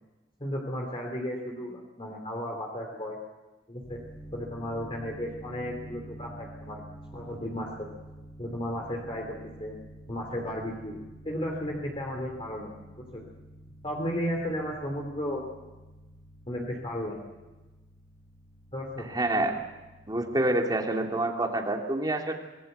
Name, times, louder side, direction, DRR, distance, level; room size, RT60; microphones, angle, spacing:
voice 1, 0.4-3.2 3.7-4.0 4.3-6.8 7.1-7.9 8.4-9.8 10.1-12.8 13.1-13.2 13.8-15.4 16.5-17.2 18.7-19.1, equal, 30° left, 0 dB, 3.2 m, -34 dB
sound 1, 3.8-20.2, right 1 dB, 70° left, 6.9 m, -48 dB
voice 2, 19.1-19.6 20.1-22.3, right 2 dB, 20° right, 2 dB, 2.7 m, -27 dB
25.5 x 19.5 x 8.1 m, 1.1 s
head